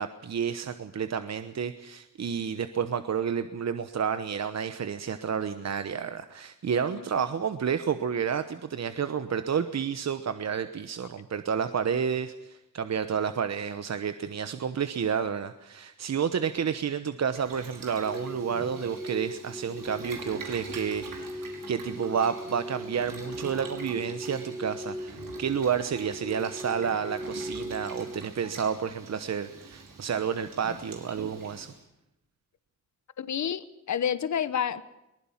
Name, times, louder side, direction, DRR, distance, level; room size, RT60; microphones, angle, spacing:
voice 1, 0.0-31.7, right 7 dB, 55° right, 10 dB, 1.1 m, -30 dB
Boiling, 17.3-31.8, right 4 dB, 85° right, 5.6 m, -45 dB
sound 1, 18.0-28.2, right 1 dB, ahead, 3.6 m, -39 dB
voice 2, 33.2-34.8, left 8 dB, 60° left, 15 dB, 1.0 m, -29 dB
22.5 x 20.0 x 7.3 m, 0.89 s
wide cardioid pair, 135°, 33 cm